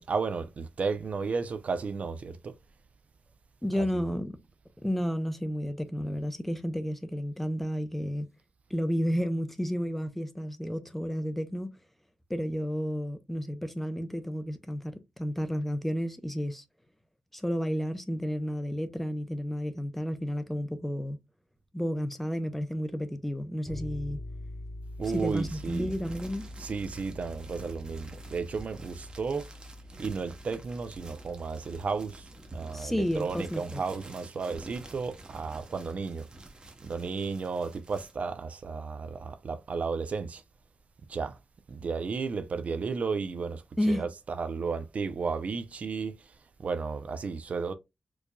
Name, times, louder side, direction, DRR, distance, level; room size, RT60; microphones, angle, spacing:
voice 1, 0.0-2.5 3.7-3.9 25.0-25.9 26.6-29.5 30.0-36.3 36.8-40.4 41.1-41.4 41.7-46.3 46.6-47.7, right 5 dB, 55° right, 0.4 m, -33 dB
voice 2, 3.6-4.3 4.8-8.3 8.7-11.7 12.3-16.6 17.3-21.2 21.7-24.2 25.1-26.5 32.7-33.8 43.8-44.1, equal, 5° left, 0.5 m, -31 dB
sound 1, 23.6-33.5, left 1 dB, 25° left, 1.1 m, -45 dB
sound 2, 25.0-38.1, right 2 dB, 35° right, 0.8 m, -49 dB
4.6 x 2.6 x 2.2 m
wide cardioid pair, 130°, 3 cm